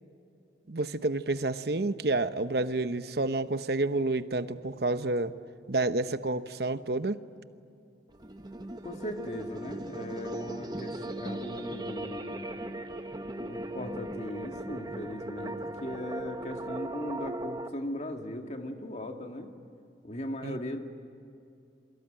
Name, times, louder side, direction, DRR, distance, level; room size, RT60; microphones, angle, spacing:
voice 1, 0.7-5.3 5.7-7.2 20.4-20.6, right 2 dB, 60° right, 11 dB, 0.9 m, -29 dB
sound 1, 8.1-17.7, right 1 dB, 20° right, 1.0 m, -38 dB
voice 2, 8.8-12.5 13.3-19.5 20.0-20.8, left 1 dB, 40° left, 4 dB, 2.2 m, -38 dB
28.0 x 24.0 x 9.0 m, 2.5 s
head